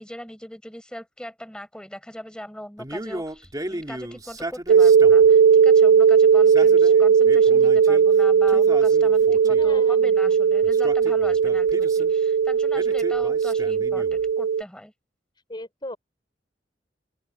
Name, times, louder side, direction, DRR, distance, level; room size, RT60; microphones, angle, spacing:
voice 1, 0.0-14.9, equal, 5° left, 4.7 m, -40 dB
Male speech man speaking, 2.8-5.3 6.3-8.1 8.5-9.8 10.6-12.1 12.7-14.3, right 1 dB, 20° right, 2.7 m, -36 dB
sound 1, 4.7-14.6, right 6 dB, 70° right, 0.3 m, -17 dB
voice 2, 9.6-10.4 15.5-16.0, left 1 dB, 25° left, 4.5 m, -38 dB
open air
head